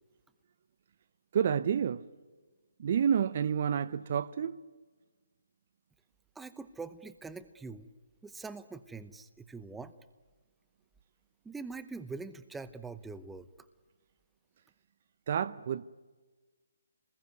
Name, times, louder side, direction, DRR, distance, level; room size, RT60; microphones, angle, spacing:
voice 1, 1.3-2.0 2.8-4.6 15.3-15.8, right 8 dB, 45° right, 0.7 m, -29 dB
voice 2, 6.4-7.9 8.2-9.9 11.4-13.5, right 4 dB, 5° right, 0.8 m, -43 dB
28.0 x 20.5 x 9.4 m
hypercardioid pair, 155°, 0 cm